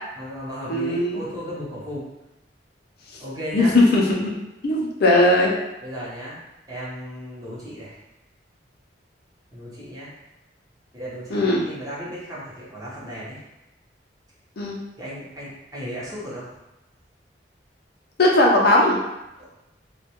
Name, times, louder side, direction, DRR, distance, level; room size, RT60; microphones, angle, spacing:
voice 1, 0.2-2.0 3.2-3.8 5.8-6.4 6.7-8.0 9.5-10.1 10.9-13.4 15.0-16.5 19.4-19.5, equal, 20° right, -7 dB, 0.7 m, -35 dB
voice 2, 0.7-1.2 3.5-4.3 4.6-5.5 11.3-11.6 14.6-14.7 18.2-19.0, left 1 dB, 60° left, -2 dB, 0.5 m, -18 dB
2.2 x 2.1 x 2.8 m, 0.93 s
head